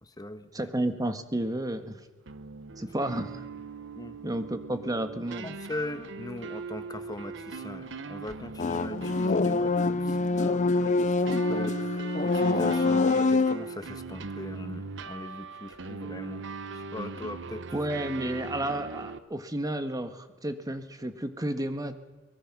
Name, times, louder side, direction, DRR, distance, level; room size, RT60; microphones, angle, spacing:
voice 1, 0.0-0.5 3.9-4.2 5.4-16.4 16.7-17.7, left 1 dB, 20° left, 9 dB, 1.4 m, -40 dB
voice 2, 0.5-2.0 2.8-3.5 4.2-5.5 17.7-22.0, right 1 dB, 20° right, 8 dB, 1.6 m, -31 dB
sound 1, 2.3-19.2, right 4 dB, 65° right, 1.0 m, -40 dB
sound 2, 8.6-13.6, left 3 dB, 40° left, 0.6 m, -25 dB
23.0 x 21.0 x 6.1 m, 1.2 s
head